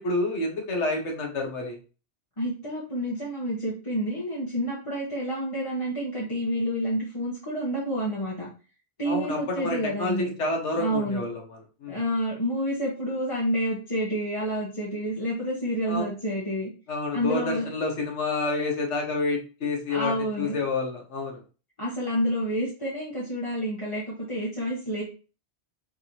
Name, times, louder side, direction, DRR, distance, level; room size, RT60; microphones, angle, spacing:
voice 1, 0.0-1.8 9.0-12.0 15.9-16.1 16.9-21.4, left 3 dB, 70° left, 1 dB, 1.5 m, -29 dB
voice 2, 2.4-8.5 9.0-10.3 10.8-11.2 11.9-16.7 17.1-17.7 19.9-20.6 21.8-25.0, equal, 25° left, -7 dB, 1.3 m, -29 dB
5.1 x 3.5 x 2.8 m, 0.35 s
omnidirectional pair, 1.2 m